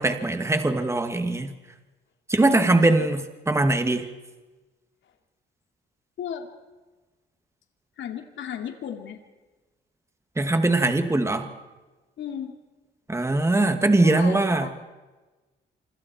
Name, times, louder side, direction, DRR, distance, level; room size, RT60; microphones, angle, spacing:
voice 1, 0.0-1.5 2.3-4.1 10.4-11.5 13.1-14.7, right 2 dB, 15° right, 7 dB, 2.4 m, -21 dB
voice 2, 2.4-2.8 5.0-5.1 6.2-6.5 8.0-9.2 12.2-12.5 14.0-14.7, left 9 dB, 70° left, 4 dB, 3.0 m, -34 dB
27.5 x 26.0 x 4.6 m, 1.2 s
cardioid pair, 90°, 20 cm